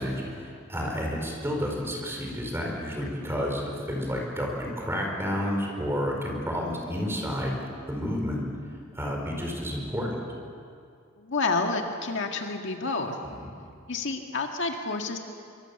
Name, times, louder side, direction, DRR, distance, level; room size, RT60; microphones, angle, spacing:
voice 1, 0.0-7.6 7.9-8.4 8.9-10.2 13.2-13.5, equal, 10° right, 0 dB, 5.0 m, -30 dB
voice 2, 11.2-13.2 13.9-15.2, left 3 dB, 60° left, 3 dB, 1.9 m, -29 dB
26.0 x 24.5 x 7.1 m, 2.3 s
head